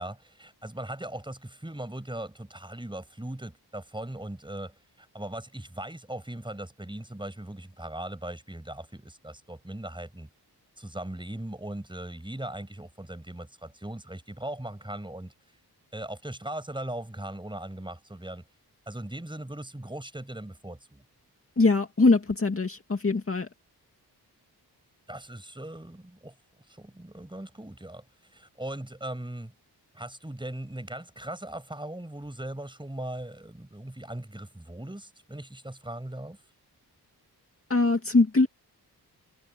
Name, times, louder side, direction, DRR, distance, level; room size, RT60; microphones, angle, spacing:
voice 1, 0.0-10.3 10.8-15.3 15.9-18.4 18.9-21.0 25.1-26.3 26.7-28.0 28.3-29.5 29.9-36.4, right 1 dB, 10° right, 6.9 m, -39 dB
voice 2, 21.6-23.5 37.7-38.5, left 3 dB, 35° left, 2.4 m, -22 dB
wide cardioid pair, 85°, 40 cm